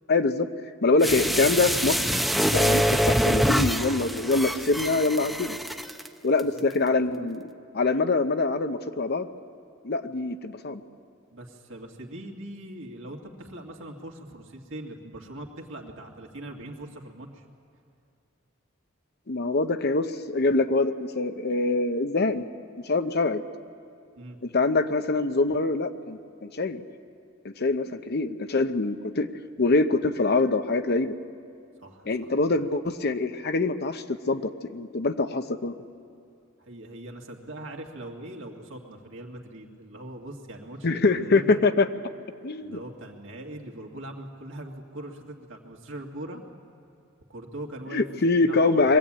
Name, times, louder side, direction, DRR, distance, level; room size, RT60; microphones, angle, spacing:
voice 1, 0.1-0.5 0.8-2.1 2.5-5.6 6.2-7.4 7.7-9.3 9.8-10.8 19.3-22.5 22.9-23.4 24.4-26.8 27.4-29.3 29.6-31.2 32.1-35.7 40.8-41.9 42.4-42.8 47.9-49.0, left 3 dB, 55° left, 9 dB, 0.8 m, -24 dB
sound 1, 1.0-6.1 6.4-6.5, equal, ahead, 0.6 m, -25 dB
voice 2, 6.6-7.0 11.3-17.4 24.2-24.4 31.8-32.4 36.6-41.6 42.6-46.4 47.3-48.1 48.4-48.8, right 1 dB, 70° right, 1 dB, 2.2 m, -41 dB
23.0 x 14.0 x 8.8 m, 2.5 s
head